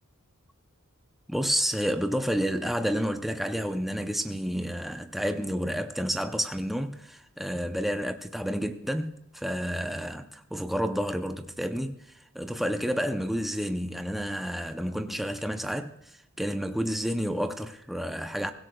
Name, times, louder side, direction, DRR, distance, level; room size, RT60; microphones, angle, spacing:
voice 1, 1.3-12.0 12.3-15.9 16.4-18.5, equal, ahead, 0.7 m, -30 dB
23.5 x 16.5 x 2.3 m
head